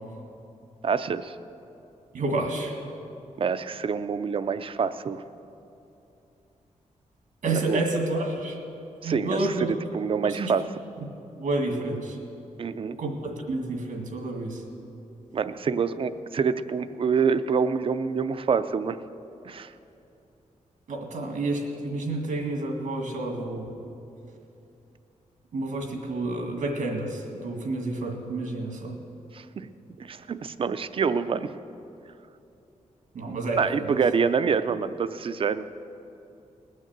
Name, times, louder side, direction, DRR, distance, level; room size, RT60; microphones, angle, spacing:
voice 1, 0.8-1.4 3.4-5.2 7.5-7.9 9.0-10.6 12.6-13.0 15.3-19.0 19.4-19.7 29.3-29.7 30.0-31.5 33.6-35.7, right 6 dB, 45° right, 12 dB, 0.5 m, -26 dB
voice 2, 2.1-2.8 7.4-8.6 9.0-9.7 10.2-10.5 11.4-12.2 13.0-14.6 20.9-23.7 25.5-28.9 33.1-33.9, right 2 dB, 85° right, 2 dB, 2.0 m, -29 dB
19.5 x 6.6 x 7.4 m, 2.8 s
wide cardioid pair, 150°, 13 cm